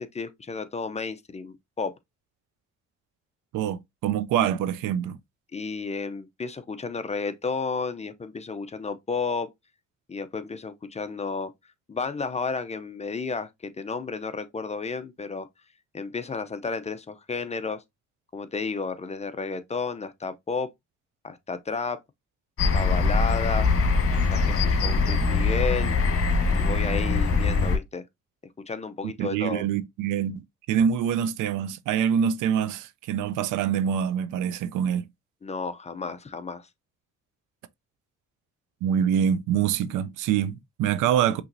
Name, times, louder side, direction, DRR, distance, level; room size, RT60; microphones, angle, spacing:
voice 1, 0.0-2.0 5.5-9.5 10.1-11.5 11.9-15.5 15.9-17.8 18.3-20.7 21.2-22.0 22.7-23.7 24.1-26.0 26.5-28.0 28.7-29.7 35.4-36.7, left 4 dB, 20° left, 0.5 m, -32 dB
voice 2, 3.5-5.2 29.0-35.1 38.8-41.4, right 8 dB, 85° right, 0.5 m, -25 dB
sound 1, 22.6-27.8, left 4 dB, 50° left, 1.4 m, -22 dB
5.6 x 3.0 x 2.6 m
cardioid pair, 90°, 30 cm